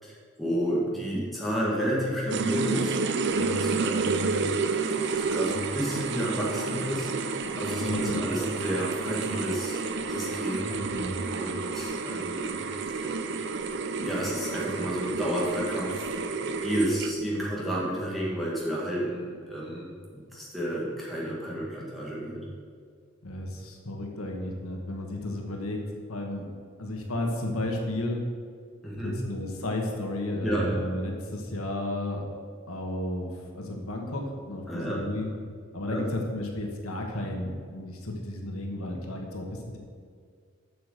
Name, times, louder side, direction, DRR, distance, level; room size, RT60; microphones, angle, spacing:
voice 1, 0.0-3.0 3.3-4.9 5.1-10.8 11.3-13.2 13.9-22.5 28.8-29.1 30.4-30.7 34.7-35.0 35.9-36.0, equal, ahead, -6 dB, 2.0 m, -31 dB
sound 1, 2.3-17.4, right 4 dB, 50° right, 0.5 m, -30 dB
voice 2, 7.8-8.2 10.7-11.2 23.2-25.8 26.1-26.5 26.8-28.2 29.0-32.2 32.7-35.3 35.7-39.8, left 1 dB, 75° left, 1 dB, 1.4 m, -33 dB
7.9 x 6.6 x 6.7 m, 2.1 s
head